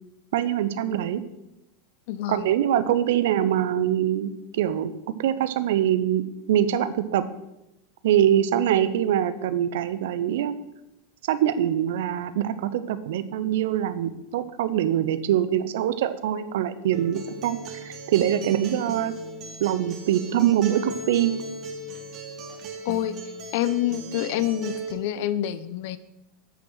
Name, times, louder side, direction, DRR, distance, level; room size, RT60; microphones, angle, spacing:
voice 1, 0.3-1.2 2.3-4.9 5.2-7.2 8.0-10.6 11.3-19.1 19.6-21.3, right 11 dB, 60° right, 13 dB, 0.6 m, -24 dB
voice 2, 2.1-2.5 22.8-23.1 23.5-26.0, left 12 dB, 55° left, 15 dB, 0.6 m, -27 dB
Acoustic guitar, 16.9-24.9, right 3 dB, 40° right, 1.6 m, -37 dB
8.4 x 6.2 x 6.1 m, 0.92 s
figure-of-eight pair, 85°, 0 cm